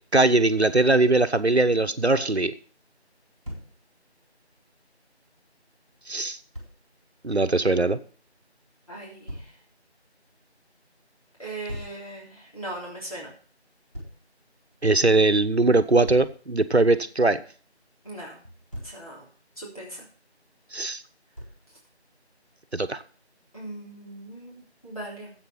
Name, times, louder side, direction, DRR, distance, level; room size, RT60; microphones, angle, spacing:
voice 1, 0.1-2.5 6.1-6.4 7.2-8.0 14.8-17.4 20.7-21.0 22.7-23.0, right 2 dB, 70° right, 12 dB, 1.1 m, -21 dB
Thump thud, 3.4-3.7 6.5-6.7 9.3-9.5 11.7-12.0 13.9-14.2 16.1-16.4 18.4-19.0 21.4-21.7, equal, 35° right, 3.7 m, -38 dB
voice 2, 8.9-9.4 11.4-13.3 18.0-18.4 18.8-19.2 19.6-20.1 23.5-25.3, right 2 dB, 30° left, -6 dB, 3.5 m, -39 dB
10.5 x 8.2 x 5.7 m, 0.43 s
figure-of-eight pair, 180°, 34 cm